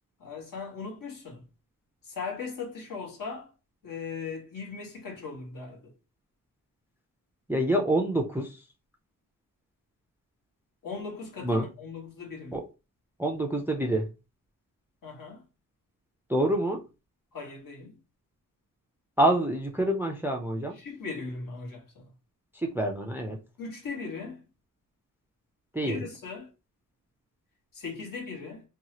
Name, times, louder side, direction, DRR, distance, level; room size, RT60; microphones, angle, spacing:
voice 1, 0.2-1.4 2.0-3.5 3.8-5.9 10.8-12.6 15.0-15.4 17.3-18.0 20.8-22.0 23.6-24.4 25.8-26.5 27.7-28.6, left 4 dB, 70° left, 1.3 m, -38 dB
voice 2, 7.5-8.6 11.4-11.7 12.5-12.7 13.2-14.1 16.3-16.8 19.2-20.8 22.5-23.4 25.7-26.1, right 1 dB, 5° right, 0.3 m, -27 dB
2.7 x 2.3 x 2.9 m
wide cardioid pair, 145°, 34 cm